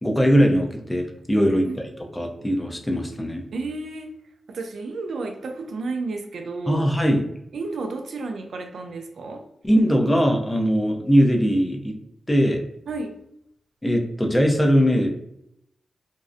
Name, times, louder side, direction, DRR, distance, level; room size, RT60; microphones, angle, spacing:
voice 1, 0.0-1.9 2.1-3.4 6.7-7.2 9.6-12.0 12.3-12.6 13.8-15.1, equal, 15° left, 1 dB, 0.5 m, -20 dB
voice 2, 1.5-1.8 3.5-4.1 4.5-7.0 7.5-9.4 12.9-13.1, right 3 dB, 80° right, 5 dB, 0.3 m, -32 dB
2.6 x 2.0 x 2.4 m, 0.77 s
cardioid pair, 60°, 0 cm